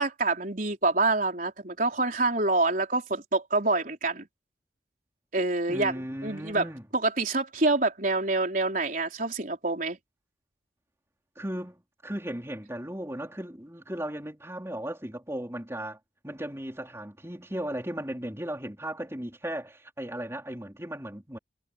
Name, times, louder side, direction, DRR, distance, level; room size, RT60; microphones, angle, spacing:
voice 1, 0.0-4.3 5.3-6.7 6.9-10.0, right 2 dB, 45° right, 4.4 m, -26 dB
voice 2, 5.7-6.8 11.4-11.8 12.0-16.0 16.2-21.4, right 1 dB, 15° right, 3.8 m, -36 dB
head